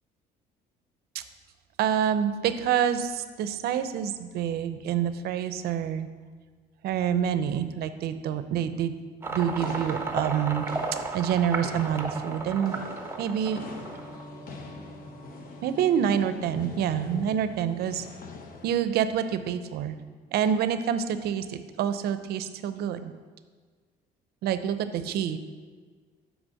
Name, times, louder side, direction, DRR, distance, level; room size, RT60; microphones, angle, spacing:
voice 1, 1.8-6.1 6.8-8.9 9.3-10.7 11.1-12.7 13.2-13.6 15.6-18.1 18.6-20.0 20.3-23.1 24.4-25.4, right 9 dB, 70° right, 11 dB, 0.6 m, -27 dB
sound 1, 9.2-18.8, left 4 dB, 55° left, 0.9 m, -44 dB
sound 2, 9.2-14.2, right 3 dB, 15° right, 0.7 m, -34 dB
sound 3, 11.4-20.1 20.3-20.5, equal, 25° left, 1.6 m, -48 dB
6.2 x 5.1 x 6.4 m, 1.5 s
cardioid pair, 110°, 17 cm